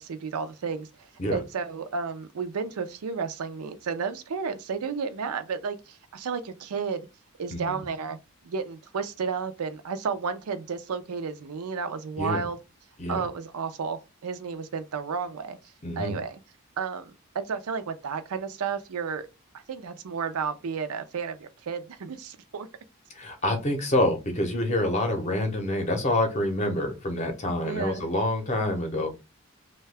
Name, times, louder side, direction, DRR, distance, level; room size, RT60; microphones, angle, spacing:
voice 1, 0.0-7.1 7.4-8.2 8.4-12.6 13.1-15.6 16.0-16.4 16.8-19.3 19.5-22.7 27.6-28.1, right 5 dB, 85° right, 0.5 m, -32 dB
voice 2, 7.5-7.8 12.2-12.4 13.0-13.3 15.8-16.2 23.2-29.1, left 1 dB, 30° left, 0.6 m, -27 dB
2.7 x 2.2 x 3.3 m
head